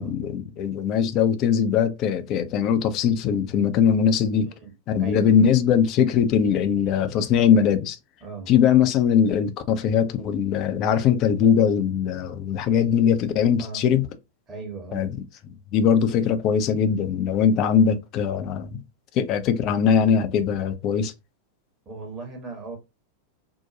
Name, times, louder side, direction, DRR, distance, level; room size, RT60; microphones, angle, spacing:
voice 1, 0.0-4.5 4.9-8.0 8.5-14.1 14.9-15.1 15.7-18.8 19.1-21.1, left 7 dB, 40° left, 0.4 m, -21 dB
voice 2, 4.4-4.7 5.0-5.4 8.2-8.5 13.6-13.8 14.5-15.1 21.8-22.8, right 3 dB, 25° right, 1.0 m, -37 dB
2.7 x 2.1 x 2.7 m
figure-of-eight pair, 90°, 0 cm